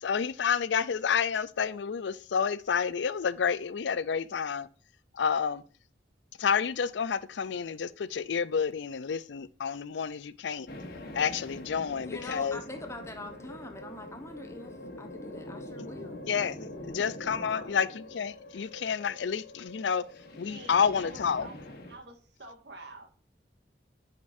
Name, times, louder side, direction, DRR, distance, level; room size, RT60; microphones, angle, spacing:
voice 1, 0.0-4.7 5.1-5.6 6.4-10.7 11.1-12.6 16.3-16.6 16.9-20.0 20.4-21.5, left 6 dB, 80° left, 0.4 m, -29 dB
sound 1, 10.7-22.0, left 1 dB, 55° left, 1.4 m, -44 dB
voice 2, 12.0-17.0, left 2 dB, 15° left, 1.0 m, -44 dB
voice 3, 17.0-17.8 20.3-21.6 21.9-23.1, right 2 dB, 70° right, 1.7 m, -48 dB
9.6 x 5.1 x 2.6 m
head